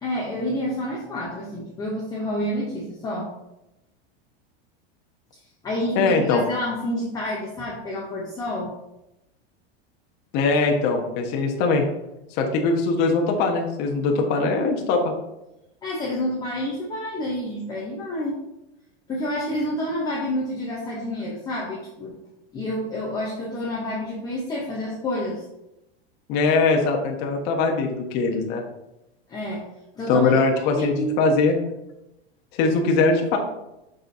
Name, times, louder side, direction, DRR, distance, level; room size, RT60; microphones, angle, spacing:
voice 1, 0.0-3.3 5.6-8.7 15.8-18.4 19.1-22.2 22.5-25.4 29.3-29.6 29.9-30.3 30.6-31.4, left 1 dB, 10° left, -5 dB, 0.7 m, -29 dB
voice 2, 5.9-6.4 10.3-11.8 12.4-15.1 26.3-28.6 30.1-31.6 32.6-33.4, left 3 dB, 30° left, 2 dB, 0.9 m, -21 dB
6.6 x 6.5 x 2.7 m, 0.90 s
supercardioid pair, 170°, 32 cm